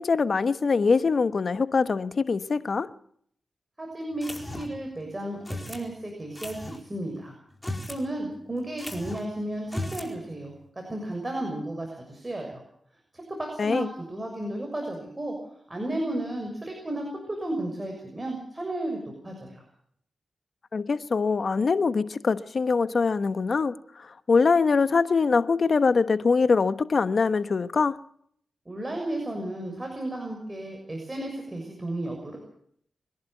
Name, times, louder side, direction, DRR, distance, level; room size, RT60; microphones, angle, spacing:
voice 1, 0.0-2.9 13.6-13.9 20.7-28.0, left 4 dB, 60° left, 1.1 m, -23 dB
voice 2, 3.8-7.3 7.9-12.6 13.1-15.3 15.7-19.6 28.6-32.4, right 1 dB, 25° right, 6.6 m, -33 dB
sound 1, 4.2-4.9 5.4-5.9 6.3-6.8 7.5-8.0 8.3-8.4 8.8-9.3 9.6-10.1, left 1 dB, 15° left, 4.7 m, -36 dB
25.5 x 11.0 x 9.3 m
cardioid pair, 45°, 0 cm